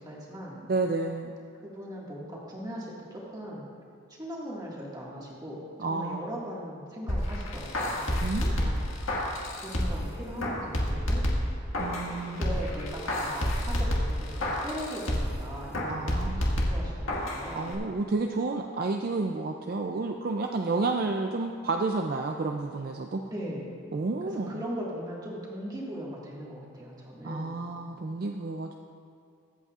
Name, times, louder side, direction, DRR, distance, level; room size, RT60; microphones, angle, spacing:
voice 1, 0.0-0.6 1.6-3.7 4.2-8.8 9.6-11.2 11.9-17.9 23.2-23.7 24.3-27.7, equal, 20° right, -5 dB, 1.8 m, -39 dB
voice 2, 0.7-1.3 5.8-6.3 8.2-8.8 11.8-12.5 15.9-16.5 17.6-23.2 23.9-24.5 27.2-28.8, right 3 dB, 45° right, 3 dB, 0.4 m, -30 dB
sound 1, 7.1-10.1 10.4-12.1 12.4-15.4 15.7-17.4 17.7-17.8, left 1 dB, 75° left, 1.8 m, -29 dB
23.5 x 8.1 x 2.4 m, 2.4 s
head